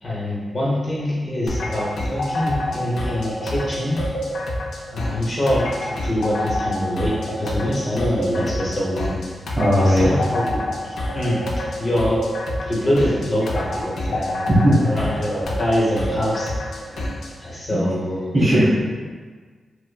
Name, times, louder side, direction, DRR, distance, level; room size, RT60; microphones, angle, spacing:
voice 1, 0.0-4.0 4.9-9.2 9.8-12.2 12.7-14.5 14.8-16.8 17.4-18.3, equal, 30° left, -5 dB, 0.8 m, -24 dB
sound 1, 1.5-17.3, left 1 dB, 80° left, 0.5 m, -28 dB
voice 2, 9.6-10.1 14.5-15.2 16.9-17.0 17.7-17.8 18.3-18.7, equal, 20° right, -13 dB, 1.3 m, -17 dB
5.0 x 2.0 x 2.3 m, 1.5 s
wide cardioid pair, 170°, 0 cm